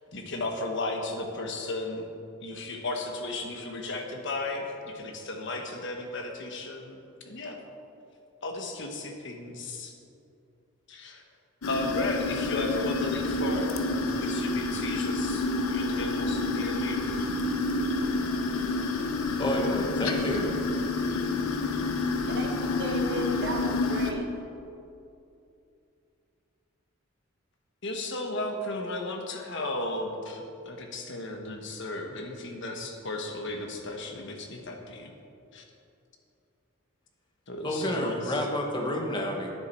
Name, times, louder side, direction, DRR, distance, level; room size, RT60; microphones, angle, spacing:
voice 1, 0.1-2.1 2.4-7.6 8.4-9.9 10.9-11.2 11.7-13.8 14.1-17.3 27.8-35.1 35.5-35.6 37.5-38.4, left 2 dB, 55° left, 3 dB, 1.2 m, -35 dB
sound 1, 11.6-24.1, left 3 dB, 85° left, 0.9 m, -29 dB
voice 2, 19.4-20.5 37.6-39.5, left 1 dB, 20° left, 1 dB, 1.2 m, -29 dB
voice 3, 22.3-24.3, right 1 dB, 55° right, 2 dB, 1.4 m, -35 dB
11.0 x 9.5 x 4.4 m, 2.6 s
head